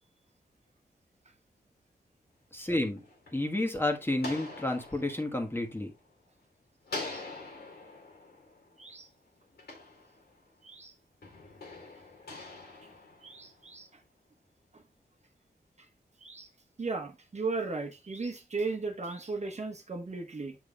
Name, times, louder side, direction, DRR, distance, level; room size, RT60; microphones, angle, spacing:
voice 1, 2.5-3.0 3.3-5.9, left 2 dB, 15° left, 1.3 m, -30 dB
sound 1, 2.7-6.4 6.8-10.6 11.2-13.9, left 2 dB, 75° left, 2.3 m, -45 dB
voice 2, 8.8-9.1 10.6-10.9 13.2-13.9 14.7-14.8 16.2-16.5 16.8-20.6, right 3 dB, 45° right, 1.1 m, -36 dB
7.1 x 6.0 x 2.3 m
wide cardioid pair, 85°, 16 cm